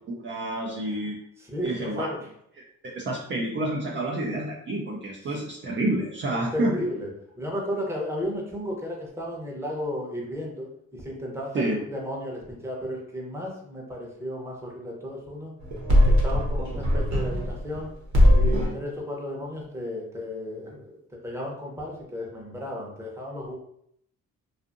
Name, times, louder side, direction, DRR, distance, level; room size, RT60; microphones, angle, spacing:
voice 1, 0.2-1.2 1.6-2.1 2.8-6.8 11.5-11.8, right 1 dB, 40° right, -3 dB, 0.5 m, -28 dB
voice 2, 1.4-2.3 5.3-5.4 6.3-15.5 16.0-17.9 18.3-23.5, left 1 dB, 10° right, -2 dB, 0.8 m, -34 dB
sound 1, 15.6-17.8 18.1-18.8, left 1 dB, 70° right, 1.0 m, -20 dB
2.6 x 2.4 x 2.5 m, 0.70 s
cardioid pair, 90°, 30 cm